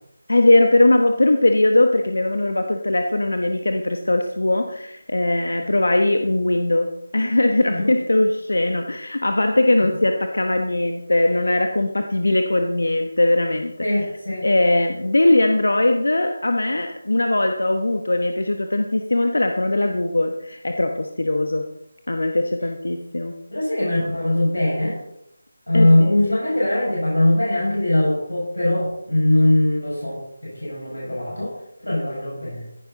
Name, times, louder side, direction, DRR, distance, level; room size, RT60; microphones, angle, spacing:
voice 1, 0.3-13.9 14.4-21.7 22.1-23.4 25.7-26.2, left 2 dB, 70° left, 5 dB, 1.2 m, -20 dB
voice 2, 13.8-14.4 23.5-25.0 25.7-31.5 31.8-32.6, left 1 dB, 85° left, -5 dB, 6.2 m, -21 dB
15.5 x 10.5 x 4.0 m, 0.81 s
figure-of-eight pair, 160°, 0 cm